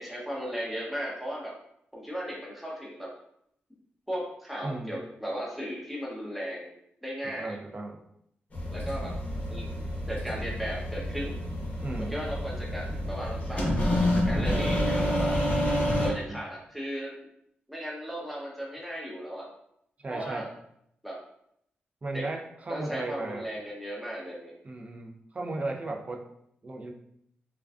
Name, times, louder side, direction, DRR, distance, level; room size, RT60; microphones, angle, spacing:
voice 1, 0.0-1.5 1.9-3.1 4.1-6.7 7.0-7.6 8.7-9.1 9.5-9.7 10.1-11.4 12.1-15.4 16.0-17.1 17.7-19.5 20.1-20.5 21.0-21.2 22.1-22.2 22.7-24.5, equal, ahead, -4 dB, 0.7 m, -36 dB
voice 2, 4.6-5.0 7.2-8.0 11.8-12.1 15.8-16.4 20.0-20.5 22.0-23.5 24.6-26.2 26.6-26.9, right 2 dB, 35° right, 2 dB, 0.4 m, -36 dB
sound 1, 8.5-16.1, left 1 dB, 40° left, 0.8 m, -28 dB
2.4 x 2.2 x 2.4 m, 0.74 s
cardioid pair, 70°, 4 cm